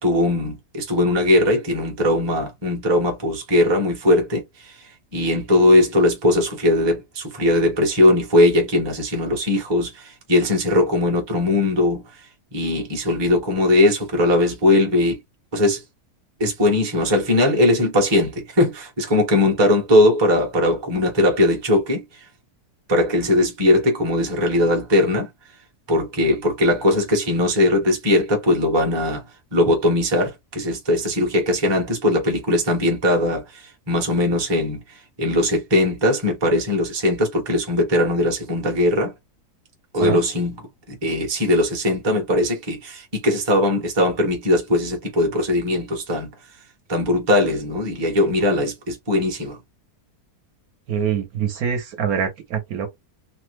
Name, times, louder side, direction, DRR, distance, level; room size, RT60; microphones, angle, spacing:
voice 1, 0.0-12.2 12.5-15.2 15.5-15.8 16.4-22.3 22.9-25.3 25.9-29.2 29.5-39.1 39.9-40.5 40.9-46.3 46.9-49.6, left 1 dB, 20° right, 0.8 m, -20 dB
voice 2, 50.9-52.9, right 7 dB, 70° right, 1.2 m, -24 dB
3.1 x 2.0 x 3.2 m
omnidirectional pair, 1.7 m